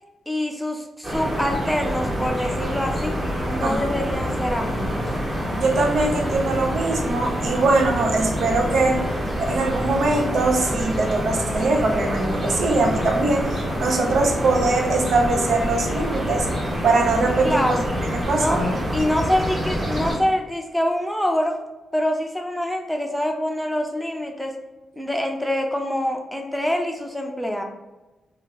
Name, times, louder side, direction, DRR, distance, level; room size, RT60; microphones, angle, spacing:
voice 1, 0.3-3.1 3.5-5.0 17.4-17.8 18.3-18.6 18.9-21.6 21.9-24.6 25.0-27.6, left 1 dB, 5° left, 3 dB, 0.5 m, -25 dB
sound 1, 1.0-20.2, equal, 40° right, 1.4 m, -26 dB
voice 2, 3.6-3.9 5.6-9.0 9.5-16.5 16.8-17.8 18.1-18.7, right 3 dB, 75° right, 2 dB, 0.6 m, -22 dB
2.8 x 2.3 x 3.5 m, 1.1 s
cardioid pair, 70°, 0 cm